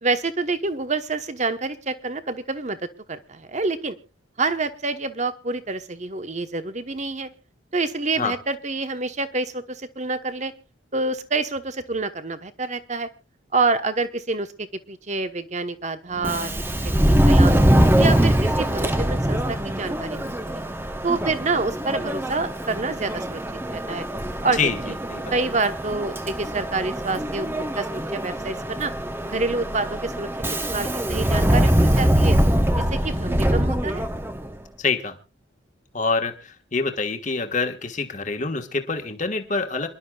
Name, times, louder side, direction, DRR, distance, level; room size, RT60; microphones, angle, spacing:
voice 1, 0.0-2.8 3.1-4.0 4.4-7.3 7.7-10.5 10.9-13.1 13.5-17.5 17.9-20.6 21.0-23.4 23.7-24.1 24.4-24.6 25.3-28.9 29.3-30.3 30.7-32.4 32.7-34.0, right 3 dB, 35° right, 10 dB, 1.0 m, -27 dB
Subway metro underground, 16.2-34.5, equal, 10° right, 0.8 m, -22 dB
voice 2, 24.5-25.3 34.8-35.2 35.9-39.9, left 4 dB, 40° left, 6 dB, 1.4 m, -26 dB
27.5 x 11.5 x 2.3 m, 0.28 s
head